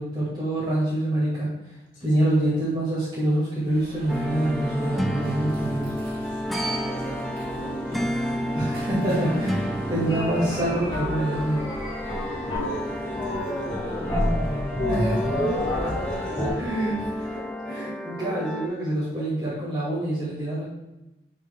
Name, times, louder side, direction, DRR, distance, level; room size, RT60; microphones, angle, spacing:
voice 1, 0.0-1.5 2.0-5.9 8.5-11.6 14.9-15.2 15.8-15.9 16.6-17.2 17.6-20.6, right 1 dB, 30° right, -10 dB, 2.0 m, -26 dB
Alarm, 3.6-17.5, equal, 55° right, 2.3 m, -40 dB
sound 1, 4.1-18.7, equal, ahead, 0.3 m, -31 dB
voice 2, 6.6-8.3 12.1-16.4 17.2-17.4 17.8-17.9, equal, 45° left, -3 dB, 2.1 m, -39 dB
sound 2, 10.1-16.5, left 1 dB, 25° left, 1.9 m, -28 dB
6.8 x 6.6 x 2.3 m, 0.99 s
head